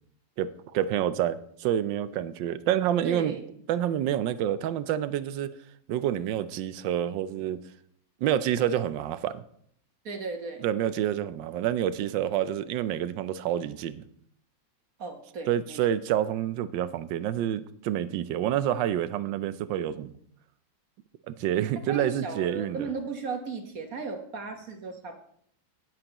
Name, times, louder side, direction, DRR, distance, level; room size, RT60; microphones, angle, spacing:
voice 1, 0.4-3.4 3.7-5.5 5.9-7.6 8.2-9.4 10.6-14.0 15.5-20.1 21.3-22.9, right 11 dB, 80° right, 14 dB, 1.3 m, -28 dB
voice 2, 3.0-3.4 10.0-10.7 15.0-15.8 21.8-25.2, right 4 dB, 50° right, 5 dB, 1.5 m, -36 dB
18.5 x 7.7 x 3.0 m, 0.66 s
omnidirectional pair, 2.0 m